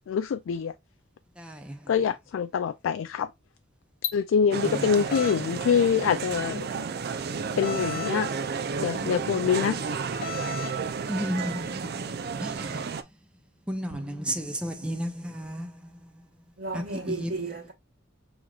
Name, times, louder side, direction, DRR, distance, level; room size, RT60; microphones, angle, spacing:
voice 1, 0.1-0.7 1.9-3.3 4.1-6.7 7.6-8.3 8.8-9.8 10.1-10.3, left 7 dB, 80° left, 0.3 m, -25 dB
voice 2, 1.4-1.8 4.7-4.8 11.1-11.8 12.4-12.8 13.7-15.7 16.7-17.3, equal, 5° right, 0.6 m, -32 dB
sound 1, 4.5-13.0, right 5 dB, 50° right, 0.5 m, -32 dB
sound 2, 5.1-5.4 7.6-8.2 10.2-10.8, left 2 dB, 50° left, 0.8 m, -35 dB
voice 3, 13.9-14.5 14.8-14.9 16.6-17.7, right 3 dB, 75° right, 1.3 m, -35 dB
6.1 x 3.0 x 2.4 m
head